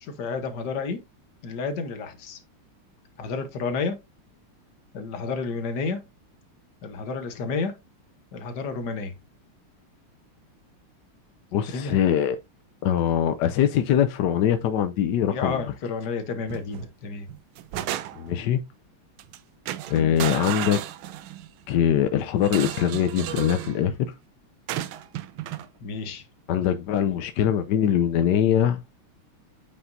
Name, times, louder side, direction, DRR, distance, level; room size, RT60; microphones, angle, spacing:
voice 1, 0.0-1.0 1.4-2.4 3.2-4.0 4.9-6.0 6.8-7.7 8.3-9.1 11.7-11.9 15.3-17.2 19.9-20.2 25.8-26.2, left 4 dB, 55° left, 1.6 m, -31 dB
voice 2, 11.5-12.4 12.8-15.7 18.2-18.6 19.9-20.8 21.7-24.1 26.5-28.8, left 9 dB, 75° left, 1.0 m, -22 dB
sound 1, 16.5-16.9 17.3-18.4 19.2-19.4 19.7-21.5 22.4-23.8 24.7-25.7, right 13 dB, 80° right, 1.4 m, -33 dB
8.5 x 5.4 x 2.6 m
omnidirectional pair, 2.3 m